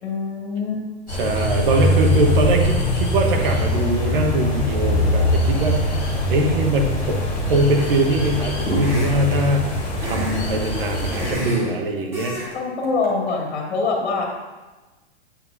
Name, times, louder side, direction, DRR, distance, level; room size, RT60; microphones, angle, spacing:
voice 1, 0.0-0.8 12.5-14.3, left 4 dB, 65° left, -1 dB, 2.2 m, -24 dB
sound 1, 1.1-11.3, left 1 dB, 20° left, 2.6 m, -22 dB
voice 2, 1.1-7.2 7.5-12.4, right 1 dB, 50° right, 2 dB, 1.2 m, -22 dB
sound 2, 7.7-8.2 8.7-9.4 10.0-10.4 10.7-11.7 12.1-12.5 12.8-13.1, equal, 10° right, 0.9 m, -30 dB
8.6 x 7.6 x 2.7 m, 1.2 s
hypercardioid pair, 175°, 33 cm